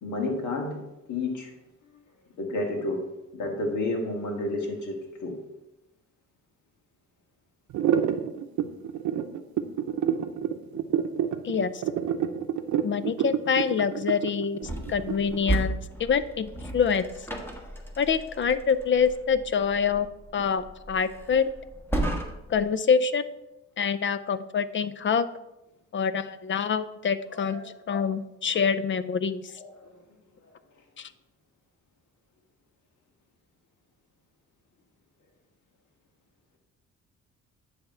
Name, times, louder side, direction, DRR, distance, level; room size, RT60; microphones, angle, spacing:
voice 1, 0.0-0.8 1.1-1.5 2.4-3.0 3.3-5.4 27.3-27.7 29.6-29.9, left 2 dB, 75° left, 2 dB, 1.9 m, -30 dB
sound 1, 7.7-15.5, right 9 dB, 75° right, 0.7 m, -27 dB
voice 2, 11.4-11.8 12.8-17.1 18.0-20.1 20.3-21.4 22.5-23.2 23.8-25.3 25.9-27.6 27.9-29.5 31.0-31.1, left 6 dB, 40° left, 13 dB, 0.5 m, -26 dB
sound 2, 14.6-22.7, right 1 dB, 10° left, 1.3 m, -34 dB
10.0 x 3.5 x 5.6 m, 0.93 s
cardioid pair, 90°, 30 cm